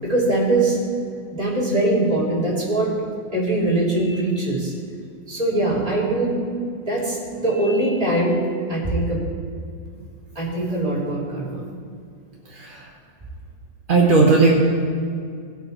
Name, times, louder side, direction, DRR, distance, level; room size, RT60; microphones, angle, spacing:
voice 1, 0.0-0.8 1.3-2.9 3.3-4.7 5.3-6.4 6.9-8.4 8.7-9.2 10.3-11.6, right 2 dB, 20° right, -6 dB, 2.8 m, -22 dB
voice 2, 12.5-12.9 13.9-14.5, right 3 dB, 40° right, -2 dB, 0.8 m, -16 dB
18.0 x 6.0 x 4.3 m, 2.2 s
omnidirectional pair, 2.0 m